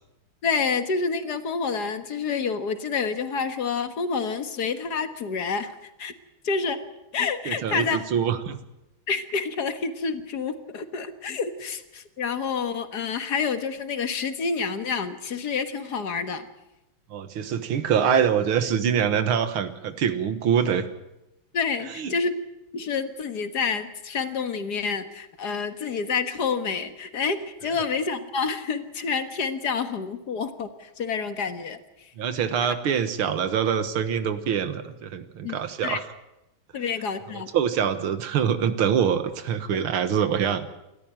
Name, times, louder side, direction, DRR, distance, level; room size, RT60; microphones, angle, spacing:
voice 1, 0.4-6.1 6.4-6.8 7.1-8.0 9.1-16.5 21.5-22.3 22.7-32.1 35.4-35.6 35.8-36.0 36.7-37.5, left 5 dB, 55° left, 9 dB, 2.0 m, -28 dB
voice 2, 7.5-8.6 17.1-20.9 22.0-22.1 32.2-36.1 37.3-40.7, right 8 dB, 90° right, 10 dB, 2.2 m, -24 dB
27.5 x 14.0 x 8.9 m, 0.93 s
omnidirectional pair, 2.2 m